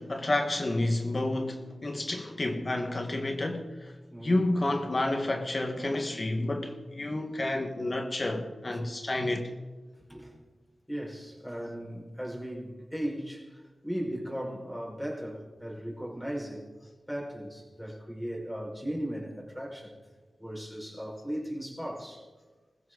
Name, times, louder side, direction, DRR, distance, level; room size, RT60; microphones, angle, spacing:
voice 1, 0.0-3.9 4.2-9.5, left 2 dB, 40° left, 1.6 m, -30 dB
voice 2, 4.1-4.4 10.1-10.4 10.9-16.7 17.1-19.9 20.4-22.3, equal, 5° left, 5.0 m, -37 dB
20.5 x 15.0 x 3.9 m
cardioid pair, 55°, 0 cm